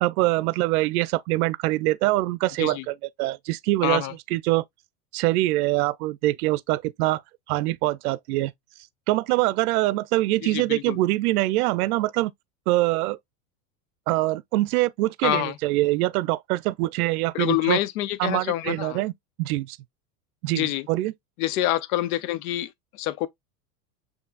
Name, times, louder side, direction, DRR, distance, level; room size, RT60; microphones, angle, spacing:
voice 1, 0.0-4.0 4.3-4.6 5.1-7.2 7.5-8.5 9.1-12.3 12.7-13.2 14.1-17.8 18.2-19.1 19.4-19.8 20.4-21.1, right 18 dB, 70° right, 0.5 m, -24 dB
voice 2, 3.8-4.1 10.4-11.0 15.2-15.6 17.3-19.0 20.5-20.9 21.4-23.3, left 14 dB, 70° left, 0.6 m, -26 dB
6.6 x 2.8 x 2.3 m
hypercardioid pair, 115°, 46 cm